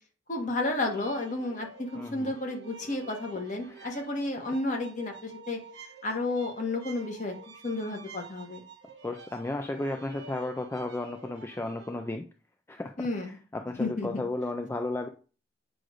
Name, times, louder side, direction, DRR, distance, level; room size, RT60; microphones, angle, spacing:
voice 1, 0.3-5.6 6.0-7.3 7.6-8.6 13.0-13.4 13.8-14.1, left 2 dB, 45° left, 2 dB, 1.3 m, -32 dB
sound 1, 0.9-12.2, right 3 dB, 75° right, 0.9 m, -49 dB
voice 2, 2.0-2.3 3.6-3.9 9.0-12.3 12.7-15.1, left 2 dB, 15° left, 5 dB, 0.3 m, -34 dB
7.6 x 2.6 x 4.9 m, 0.37 s
head